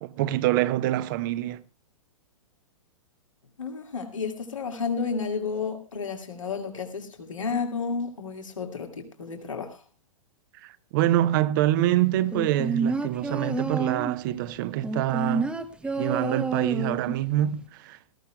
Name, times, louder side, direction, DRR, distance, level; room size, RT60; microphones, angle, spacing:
voice 1, 0.0-1.6 10.6-15.5 16.0-18.0, right 13 dB, 40° right, 0.7 m, -25 dB
voice 2, 3.6-9.8, left 5 dB, 70° left, 2.2 m, -32 dB
sound 1, 12.3-14.2 14.8-17.2 17.6-17.7, right 3 dB, 5° right, 0.9 m, -29 dB
19.5 x 14.0 x 2.3 m
figure-of-eight pair, 110°, 17 cm